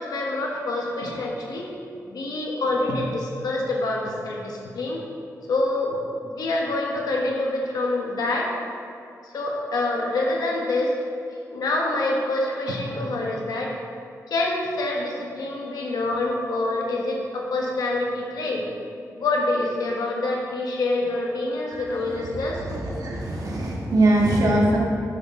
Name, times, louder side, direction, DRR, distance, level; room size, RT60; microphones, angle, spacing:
voice 1, 0.0-1.7 2.1-5.0 5.5-6.0 6.2-8.5 9.2-10.9 11.5-13.7 14.3-18.6 19.2-22.6, left 2 dB, 90° left, -1 dB, 1.3 m, -26 dB
voice 2, 22.6-24.8, right 1 dB, 75° right, -3 dB, 1.8 m, -22 dB
9.6 x 6.2 x 3.7 m, 2.5 s
cardioid pair, 75°, 6 cm